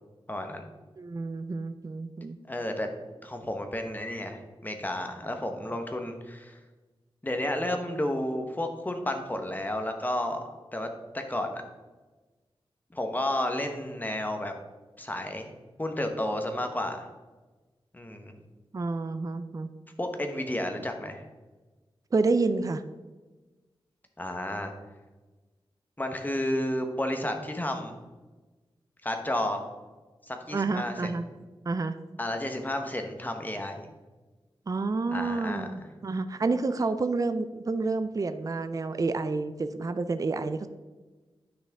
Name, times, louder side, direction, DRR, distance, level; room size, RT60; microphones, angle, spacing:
voice 1, 0.3-0.7 2.5-2.9 3.2-6.6 7.2-10.4 10.7-10.9 11.1-11.6 12.9-14.5 15.0-15.5 15.8-17.1 17.9-18.3 20.0-21.2 24.2-24.7 26.0-27.9 29.0-29.6 30.2-31.1 32.2-33.9 35.1-35.6, left 1 dB, 20° left, 5 dB, 1.0 m, -31 dB
voice 2, 1.0-2.4 18.7-19.7 22.1-22.8 30.5-31.3 31.7-31.9 34.7-40.7, right 3 dB, 35° right, 10 dB, 0.4 m, -29 dB
9.7 x 6.0 x 3.5 m, 1.2 s
wide cardioid pair, 95°, 10 cm